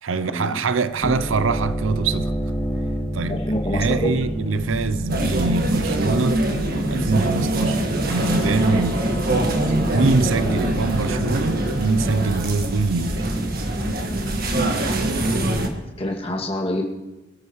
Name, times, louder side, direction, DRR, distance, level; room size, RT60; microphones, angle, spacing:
voice 1, 0.0-2.3 3.1-6.4 6.9-9.2 9.7-13.3, right 4 dB, 75° right, 0.5 m, -24 dB
sound 1, 0.9-13.8, equal, 10° left, 1.7 m, -29 dB
voice 2, 3.3-4.1 10.4-10.6 15.3-16.8, left 1 dB, 30° left, 2.3 m, -27 dB
sound 2, 5.1-15.7, right 1 dB, 50° right, 1.6 m, -23 dB
27.0 x 13.0 x 3.1 m
head